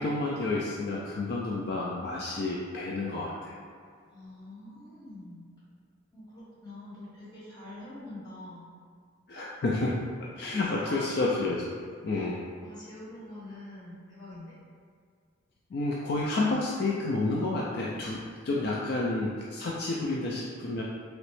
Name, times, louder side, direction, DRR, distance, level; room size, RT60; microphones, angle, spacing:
voice 1, 0.0-3.5 9.3-9.9 10.3-11.7 12.0-12.4 15.7-20.8, left 2 dB, 55° left, -4 dB, 0.3 m, -30 dB
voice 2, 4.1-5.5 6.1-8.7 10.4-10.5 10.8-11.2 12.1-12.3 12.6-14.5, left 1 dB, 20° left, -10 dB, 1.0 m, -45 dB
3.0 x 2.9 x 3.1 m, 2.1 s
head